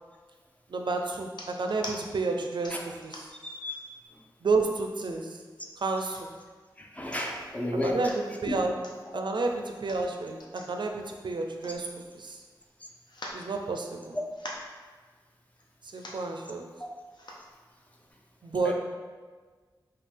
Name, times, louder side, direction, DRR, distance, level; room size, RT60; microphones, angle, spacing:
voice 1, 0.7-3.3 4.4-5.4 5.8-6.3 7.8-8.8 9.1-11.9 12.1-12.4 13.3-14.2 15.9-16.7 18.4-18.7, right 3 dB, 70° right, 3 dB, 0.4 m, -30 dB
sound 1, 1.3-2.0 2.6-3.5 4.0-4.2 4.5-5.1 5.8-6.4 6.8-6.9 7.1-7.5 7.9-8.2 8.8-9.0 9.7-12.3 12.6-12.7 13.1-14.0 14.3-14.8 15.6-15.7 15.9-16.3 17.1-17.5 18.1-18.2, left 1 dB, 65° left, 0.6 m, -44 dB
voice 2, 3.4-3.9 6.8-8.0 8.5-8.6 18.6-18.7, left 1 dB, 20° left, 0 dB, 0.6 m, -32 dB
5.3 x 2.3 x 3.3 m, 1.4 s
wide cardioid pair, 90°, 8 cm